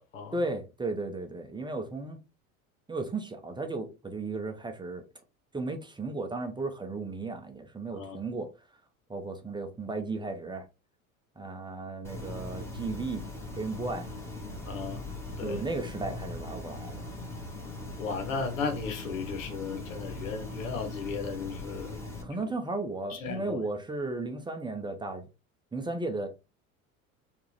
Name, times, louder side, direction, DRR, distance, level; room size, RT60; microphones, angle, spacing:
voice 1, 0.3-2.2 2.9-5.0 5.5-8.7 9.1-10.7 11.4-13.2 13.5-14.1 15.4-17.0 22.2-25.3 25.7-26.3, right 3 dB, 10° right, 0.7 m, -35 dB
sound 1, 12.0-22.2, left 2 dB, 5° left, 1.5 m, -40 dB
voice 2, 14.6-15.0 15.4-15.6 18.0-22.0 23.1-23.6, left 5 dB, 70° left, 1.2 m, -35 dB
4.6 x 2.6 x 3.3 m
figure-of-eight pair, 70°, 41 cm